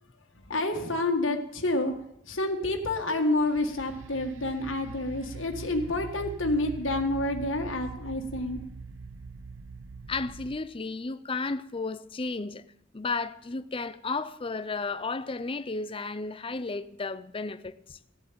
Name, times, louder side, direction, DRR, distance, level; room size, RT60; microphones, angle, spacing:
voice 1, 0.4-1.9 2.3-8.6, left 2 dB, 80° left, 1.8 m, -28 dB
sound 1, 3.4-10.6, right 4 dB, 90° right, 0.8 m, -42 dB
voice 2, 10.1-12.6 12.9-18.0, left 3 dB, 30° left, 0.6 m, -33 dB
15.5 x 7.3 x 8.8 m
head